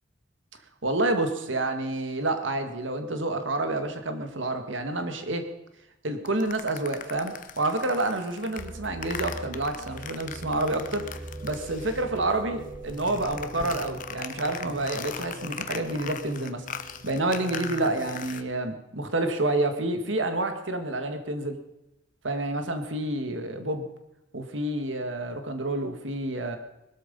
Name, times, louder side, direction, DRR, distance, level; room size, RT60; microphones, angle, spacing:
voice 1, 0.8-5.5 6.0-11.0 11.4-16.6 17.0-21.6 22.2-23.9 24.3-26.6, right 2 dB, 90° right, 7 dB, 2.0 m, -28 dB
sound 1, 6.3-12.3 12.5-18.4, left 7 dB, 45° left, 0.9 m, -40 dB
sound 2, 8.6-18.6, right 1 dB, 25° right, 3.3 m, -42 dB
20.5 x 13.0 x 5.4 m, 0.91 s
head